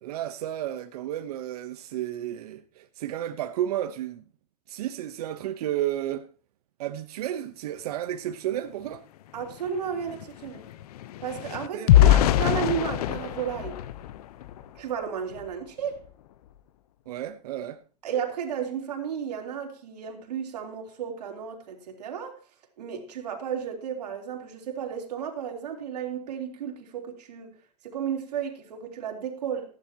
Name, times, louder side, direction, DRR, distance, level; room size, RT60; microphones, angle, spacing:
voice 1, 0.0-4.2 4.7-6.3 6.8-9.0 11.7-12.2 17.1-17.8, right 12 dB, 70° right, 1.0 m, -32 dB
sound 1, 8.9-9.0 9.3-14.8 15.3-15.5 15.9-16.1, left 13 dB, 70° left, 0.8 m, -24 dB
voice 2, 9.3-10.6 11.2-13.8 14.7-16.0 18.0-22.4 22.8-27.5 27.8-29.8, right 8 dB, 90° right, 3.2 m, -33 dB
15.0 x 11.5 x 2.9 m
supercardioid pair, 145°, 20 cm